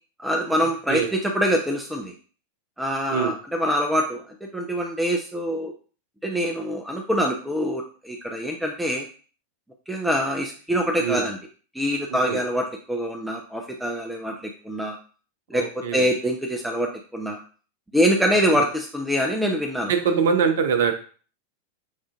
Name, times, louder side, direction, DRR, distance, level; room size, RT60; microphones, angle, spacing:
voice 1, 0.2-2.1 2.8-4.2 4.5-5.7 6.2-9.1 9.9-11.4 11.7-15.0 15.5-17.4 17.9-19.9, equal, 5° right, 1 dB, 0.5 m, -24 dB
voice 2, 15.5-16.1 18.5-18.6 19.9-20.9, right 6 dB, 60° right, 7 dB, 0.6 m, -23 dB
6.3 x 2.4 x 2.4 m, 0.40 s
figure-of-eight pair, 90°, 0 cm